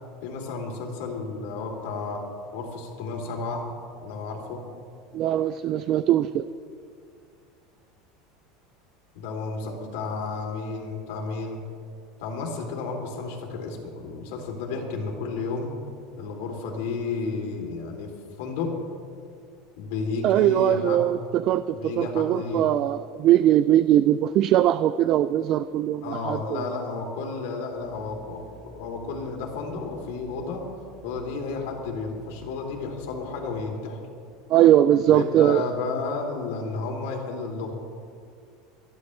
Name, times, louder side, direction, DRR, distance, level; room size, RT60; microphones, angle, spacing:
voice 1, 0.2-2.2 2.5-3.7 4.0-4.6 9.1-11.6 12.2-15.7 16.2-18.1 18.4-18.7 19.8-21.0 21.7-22.7 26.0-30.6 31.0-34.0 35.1-37.7, left 4 dB, 70° left, 1 dB, 2.9 m, -32 dB
voice 2, 5.1-6.5 20.2-26.7 34.5-35.7, right 12 dB, 35° right, 13 dB, 0.3 m, -21 dB
sound 1, 27.7-33.6, right 4 dB, 55° right, 3.3 m, -50 dB
29.5 x 11.0 x 3.2 m, 2.3 s
supercardioid pair, 170°, 0 cm